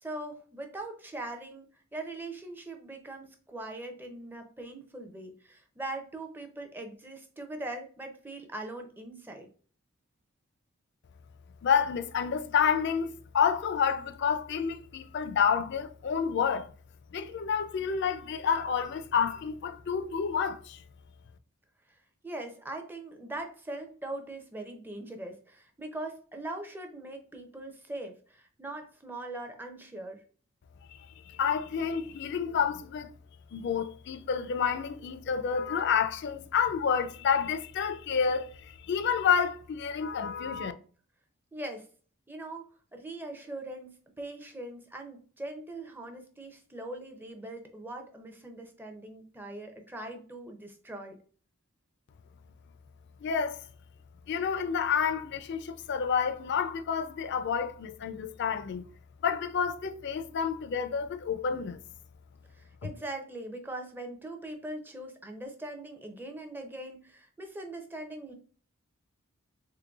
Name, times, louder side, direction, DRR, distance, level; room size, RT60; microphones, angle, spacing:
voice 1, 0.0-9.5 21.9-22.0 22.2-30.2 41.5-41.9 42.3-42.7 42.9-43.9 44.2-51.2 62.5-68.3, right 2 dB, 10° right, 0.5 m, -41 dB
voice 2, 11.6-16.7 17.1-20.8 30.9-31.0 31.3-33.1 33.5-40.7 53.2-53.6 54.3-58.8 59.2-61.8, left 7 dB, 55° left, 0.4 m, -29 dB
3.7 x 3.3 x 2.3 m
head